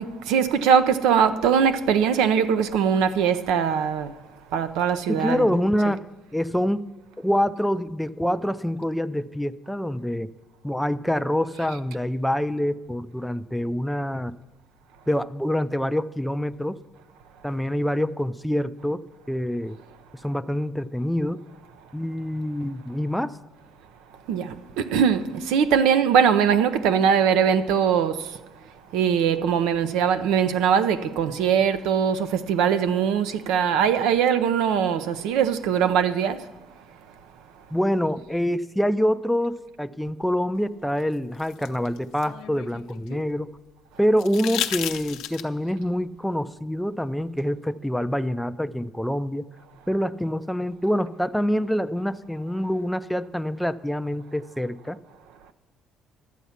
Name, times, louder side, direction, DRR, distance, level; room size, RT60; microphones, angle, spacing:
voice 1, 0.0-4.2 4.5-5.5 24.3-28.4 28.9-36.5, right 7 dB, 90° right, 0.6 m, -21 dB
voice 2, 5.1-6.0 6.3-6.9 7.2-10.3 10.6-14.3 15.1-16.8 17.4-19.8 20.2-21.4 21.9-23.4 37.7-43.5 44.0-49.4 49.9-55.0, equal, ahead, 0.4 m, -26 dB
sound 1, 41.0-43.3 44.2-45.7 47.4-47.5, left 12 dB, 90° left, 0.7 m, -33 dB
12.0 x 8.3 x 5.7 m
cardioid pair, 115°, 0 cm